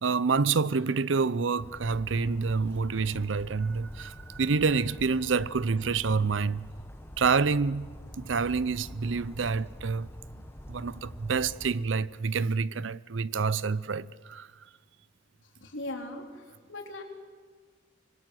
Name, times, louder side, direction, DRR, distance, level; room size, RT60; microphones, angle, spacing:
voice 1, 0.0-6.7 7.2-7.9 8.2-10.1 10.7-14.5, right 4 dB, 80° right, 0.6 m, -27 dB
Bird vocalization bird call bird song, 1.6-11.7, equal, 15° left, 1.3 m, -46 dB
voice 2, 15.6-16.4 16.7-17.0, left 1 dB, 85° left, 3.8 m, -38 dB
25.5 x 22.0 x 7.8 m
head